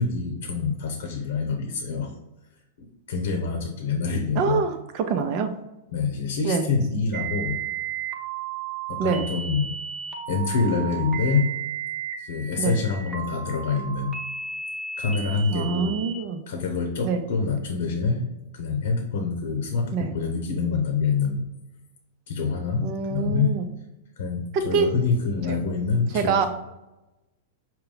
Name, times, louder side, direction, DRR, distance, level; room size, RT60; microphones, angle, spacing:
voice 1, 0.0-2.1 2.8-4.6 5.9-7.6 8.9-9.7 10.3-11.5 12.2-14.1 15.0-15.9 16.5-18.2 18.5-21.4 22.3-23.5 24.2-26.5, left 4 dB, 70° left, 3 dB, 0.8 m, -26 dB
voice 2, 4.4-5.5 6.4-6.7 9.0-9.3 12.6-12.8 15.5-16.4 17.0-17.2 19.9-20.1 22.8-23.6 24.5-24.9 25.5-25.6 26.1-26.5, right 5 dB, 50° right, 7 dB, 0.6 m, -25 dB
sound 1, 7.1-16.1, right 7 dB, 10° right, 1.0 m, -34 dB
5.6 x 2.2 x 3.9 m, 0.99 s
hypercardioid pair, 110°, 0 cm